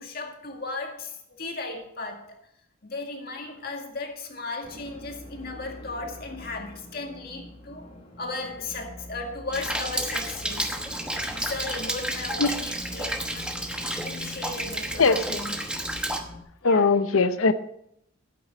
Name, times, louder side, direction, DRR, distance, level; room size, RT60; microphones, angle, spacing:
voice 1, 0.0-2.4 2.8-7.9 8.2-10.8 11.3-13.5 14.0-15.5 16.6-16.9, left 3 dB, 50° left, 3 dB, 2.0 m, -36 dB
sound 1, 4.6-16.4, left 1 dB, 30° left, 1.7 m, -43 dB
Rain, 9.5-16.2, right 1 dB, 5° right, 1.0 m, -31 dB
voice 2, 15.0-15.4 16.6-17.5, left 4 dB, 90° left, 11 dB, 0.7 m, -20 dB
12.5 x 8.5 x 5.0 m, 0.75 s
head